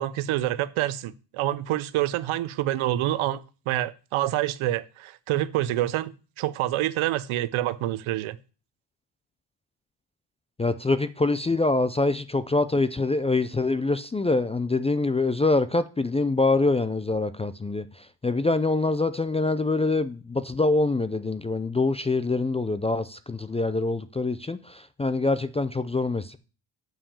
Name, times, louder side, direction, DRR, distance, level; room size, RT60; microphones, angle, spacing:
voice 1, 0.0-6.1 6.4-8.4, right 14 dB, 75° right, 0.8 m, -27 dB
voice 2, 10.6-26.4, left 3 dB, 15° left, 0.3 m, -25 dB
7.3 x 5.7 x 6.9 m
cardioid pair, 90°, 49 cm